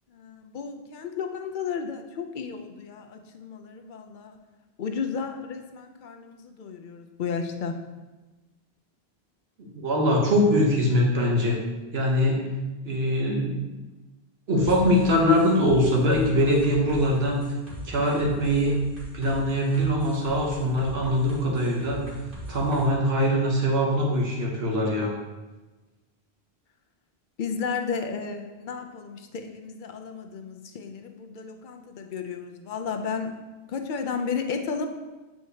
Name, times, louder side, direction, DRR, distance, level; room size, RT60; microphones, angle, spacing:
voice 1, 0.1-4.4 4.8-7.8 27.4-33.3 33.7-34.9, left 5 dB, 60° left, 5 dB, 0.7 m, -33 dB
voice 2, 9.6-11.6 11.9-12.4 12.8-13.7 14.5-17.4 17.8-18.7 19.1-22.0 22.5-25.1, equal, 75° right, -1 dB, 1.4 m, -22 dB
sound 1, 14.6-22.8, left 1 dB, 60° right, 2.0 m, -41 dB
7.9 x 4.5 x 2.8 m, 1.2 s
omnidirectional pair, 1.1 m